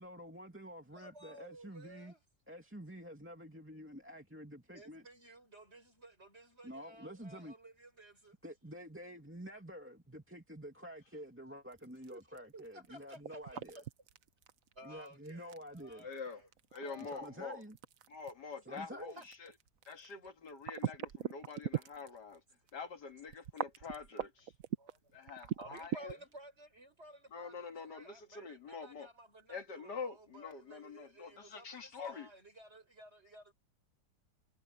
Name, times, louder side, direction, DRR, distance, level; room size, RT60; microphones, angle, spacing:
voice 1, 0.0-2.1 2.5-5.0 6.6-7.5 8.4-13.8 14.8-16.1 17.0-17.8 18.6-19.2, equal, 5° right, 2.4 m, -49 dB
voice 2, 0.9-2.2 4.7-8.4 12.1-12.2 12.5-13.6 14.8-16.5 16.8-17.3 18.7-19.2 20.0-20.3 24.8-33.5, right 1 dB, 35° right, 6.2 m, -55 dB
sound 1, 11.7-22.4 22.7-22.8 23.3-26.3, right 9 dB, 55° right, 1.2 m, -41 dB
voice 3, 16.0-16.4 16.7-17.6 18.1-19.5 19.9-22.4 22.7-24.5 25.1-26.2 27.3-29.1 29.5-32.3, left 5 dB, 70° left, 2.4 m, -46 dB
omnidirectional pair, 1.9 m